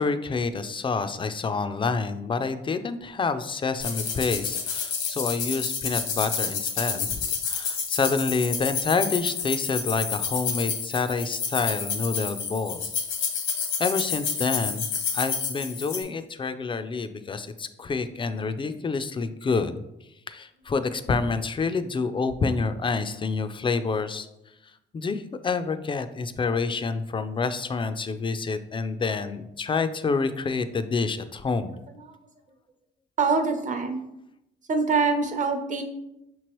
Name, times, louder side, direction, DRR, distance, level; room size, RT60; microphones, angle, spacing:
voice 1, 0.0-12.9 13.8-14.8 15.1-19.8 20.3-24.3 24.9-31.8, left 4 dB, 25° left, 10 dB, 0.3 m, -28 dB
sound 1, 3.8-16.0, left 6 dB, 85° left, 1.0 m, -29 dB
voice 2, 33.2-34.0 34.7-35.8, right 4 dB, 40° right, 6 dB, 0.7 m, -24 dB
5.6 x 3.0 x 3.0 m, 0.85 s
cardioid pair, 90°, 20 cm